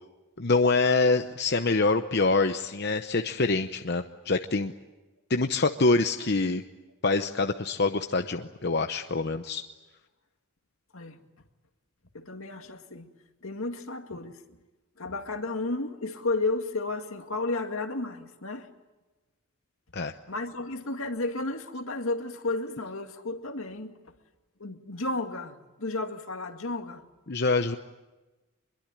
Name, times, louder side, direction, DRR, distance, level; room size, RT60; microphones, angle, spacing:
voice 1, 0.4-4.7 5.3-6.6 7.0-9.6 19.9-20.1 27.3-27.8, left 3 dB, 50° left, 7 dB, 0.8 m, -25 dB
voice 2, 12.1-13.1 13.4-14.4 15.0-18.7 20.3-23.9 24.6-27.0, left 2 dB, 75° left, 6 dB, 2.1 m, -32 dB
25.5 x 22.0 x 9.0 m, 1.1 s
head